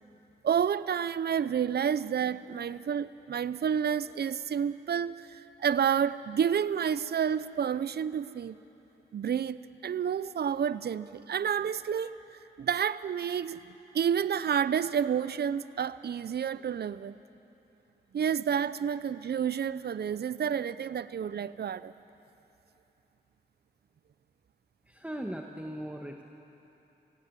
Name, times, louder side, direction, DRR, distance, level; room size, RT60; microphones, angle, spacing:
voice 1, 0.4-8.6 9.1-12.1 12.6-13.6 13.9-17.2 18.1-21.9, right 8 dB, 65° right, 16 dB, 0.5 m, -30 dB
voice 2, 24.9-26.2, equal, 5° right, 2 dB, 1.4 m, -38 dB
17.5 x 16.0 x 9.4 m, 3.0 s
cardioid pair, 40°, 18 cm